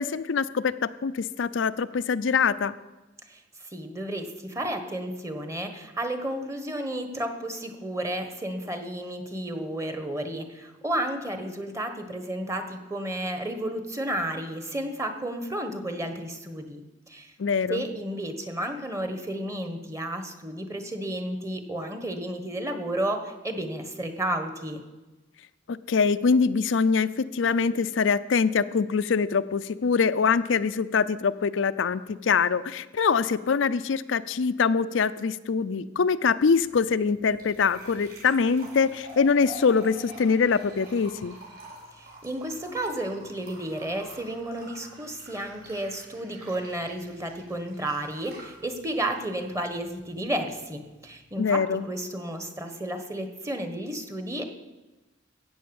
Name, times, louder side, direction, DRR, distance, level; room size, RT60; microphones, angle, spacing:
voice 1, 0.0-2.7 17.4-17.8 25.7-41.4 51.4-51.8, left 5 dB, 75° left, 12 dB, 0.5 m, -24 dB
voice 2, 3.3-16.8 17.1-17.3 17.7-24.8 41.9-54.4, right 1 dB, 15° right, 7 dB, 1.3 m, -32 dB
sound 1, 36.5-51.5, right 2 dB, 50° right, 5.6 m, -48 dB
14.0 x 8.8 x 7.0 m, 1.1 s
head